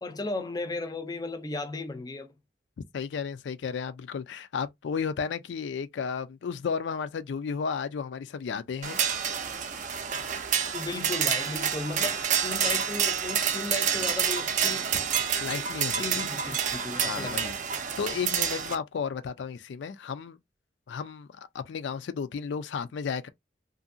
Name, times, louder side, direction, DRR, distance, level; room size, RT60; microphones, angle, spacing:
voice 1, 0.0-2.3 10.7-14.8 15.9-17.5, left 2 dB, 20° left, 0.4 m, -35 dB
voice 2, 2.9-9.0 15.4-16.2 17.0-17.5 18.0-20.4 20.9-23.3, left 6 dB, 85° left, 0.4 m, -33 dB
sound 1, 8.8-18.8, right 8 dB, 45° right, 0.4 m, -28 dB
2.7 x 2.5 x 2.5 m
head